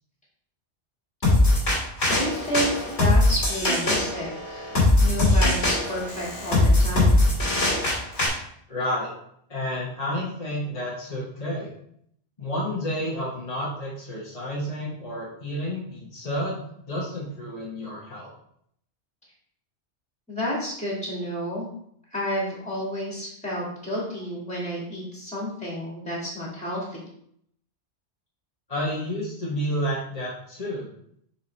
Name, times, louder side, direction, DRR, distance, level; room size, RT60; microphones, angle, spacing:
sound 1, 1.2-8.3, left 2 dB, 75° left, 2.4 m, -21 dB
voice 1, 2.1-4.7 5.0-7.3 20.3-21.7 22.1-27.0, equal, 5° left, -5 dB, 2.1 m, -30 dB
voice 2, 8.7-9.1 9.5-11.7 12.4-18.3 28.7-30.9, equal, 35° left, -7 dB, 1.3 m, -30 dB
7.0 x 4.6 x 3.3 m, 0.69 s
omnidirectional pair, 1.2 m